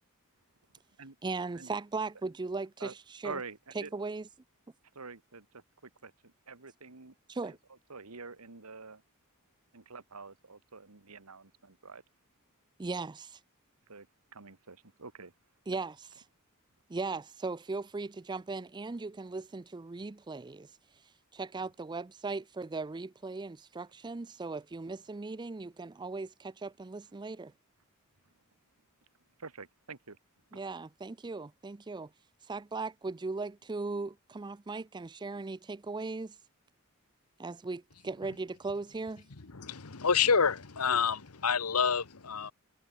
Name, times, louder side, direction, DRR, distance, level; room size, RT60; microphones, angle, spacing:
voice 1, 1.2-2.9 3.2-3.4 3.8-4.3 7.3-7.6 12.8-13.4 15.7-16.0 16.9-20.7 21.3-27.5 30.5-32.1 32.5-36.4 37.4-39.2, right 3 dB, 20° right, 0.4 m, -38 dB
voice 2, 3.2-3.9 4.9-7.2 7.4-7.6 7.9-9.0 9.7-12.0 13.9-14.1 14.3-15.3 15.7-15.8 28.2-28.3 29.4-30.2 30.5-30.6, right 4 dB, 85° right, 1.9 m, -47 dB
voice 3, 39.5-42.5, left 6 dB, 85° left, 1.3 m, -28 dB
head